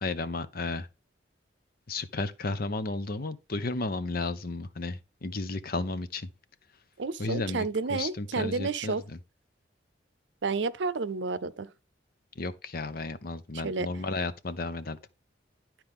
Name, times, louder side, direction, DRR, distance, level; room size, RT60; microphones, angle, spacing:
voice 1, 0.0-0.9 1.9-6.3 7.2-9.0 12.4-15.0, left 3 dB, 55° left, 0.8 m, -33 dB
voice 2, 7.0-9.0 10.4-11.7 13.5-13.9, right 4 dB, 75° right, 0.6 m, -31 dB
11.5 x 4.5 x 3.6 m
head